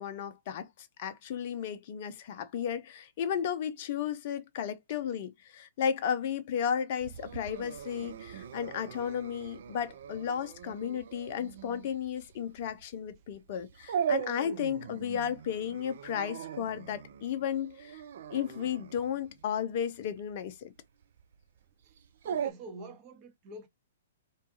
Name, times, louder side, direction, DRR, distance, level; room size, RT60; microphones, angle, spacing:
voice 1, 0.0-18.0 18.3-20.7, left 8 dB, 45° left, 0.5 m, -34 dB
Dog, 7.0-22.5, right 8 dB, 55° right, 0.3 m, -40 dB
voice 2, 22.2-23.7, right 2 dB, 30° right, 0.9 m, -46 dB
2.6 x 2.3 x 2.6 m
figure-of-eight pair, 115°, 0 cm